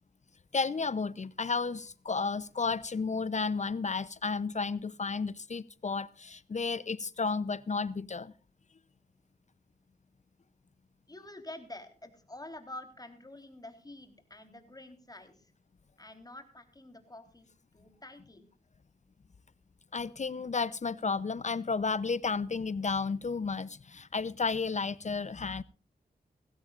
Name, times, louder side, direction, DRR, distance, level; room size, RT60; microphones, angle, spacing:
voice 1, 0.5-8.3 19.9-25.6, left 4 dB, 45° left, 0.7 m, -32 dB
voice 2, 11.1-15.5 16.0-18.5, left 1 dB, 25° left, 3.8 m, -48 dB
19.5 x 16.5 x 2.5 m
cardioid pair, 60°, 16 cm